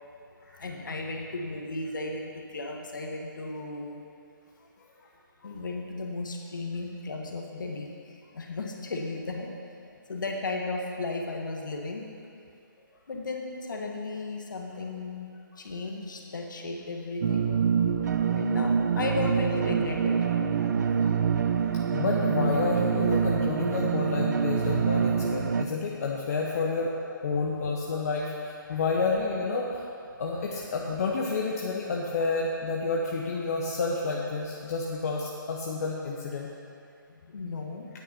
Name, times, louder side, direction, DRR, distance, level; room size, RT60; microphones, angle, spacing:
voice 1, 0.6-4.0 5.4-9.5 10.1-12.1 13.1-15.3 15.6-17.5 18.3-20.2 30.4-30.5 37.3-37.9, left 3 dB, 60° left, 1 dB, 1.6 m, -35 dB
sound 1, 17.2-25.6, right 7 dB, 55° right, 0.5 m, -26 dB
voice 2, 20.6-21.2 21.7-29.8 30.2-36.5, left 4 dB, 45° left, -2 dB, 1.0 m, -30 dB
9.2 x 8.3 x 5.6 m, 2.5 s
figure-of-eight pair, 145°, 11 cm